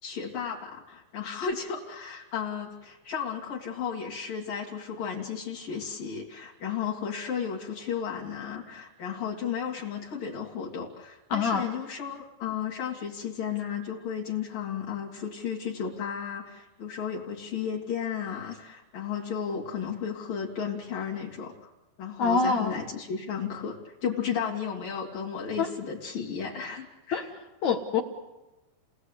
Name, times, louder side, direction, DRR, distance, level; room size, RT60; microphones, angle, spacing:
voice 1, 0.0-21.6 22.0-27.3, left 7 dB, 55° left, -4 dB, 3.5 m, -34 dB
voice 2, 11.3-11.7 22.2-22.8 25.6-25.7 27.1-27.2 27.6-28.0, left 5 dB, 70° left, 5 dB, 1.8 m, -25 dB
29.5 x 19.0 x 8.1 m, 1.1 s
omnidirectional pair, 5.2 m